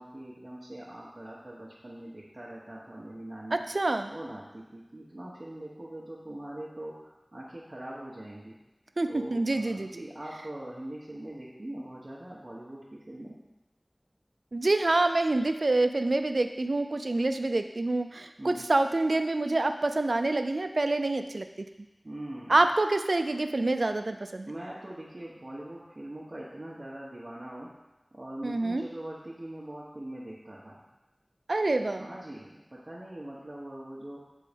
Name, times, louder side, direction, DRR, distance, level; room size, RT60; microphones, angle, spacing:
voice 1, 0.0-3.6 4.1-8.6 9.1-13.4 18.4-18.6 22.0-22.6 24.4-27.7 28.1-30.8 32.0-34.2, right 1 dB, 45° right, -7 dB, 1.1 m, -42 dB
voice 2, 3.5-4.1 9.0-10.0 14.5-21.7 22.5-24.5 28.4-28.9 31.5-32.1, right 2 dB, 80° right, 8 dB, 0.4 m, -27 dB
8.3 x 3.8 x 5.1 m, 1.0 s
wide cardioid pair, 50°, 0 cm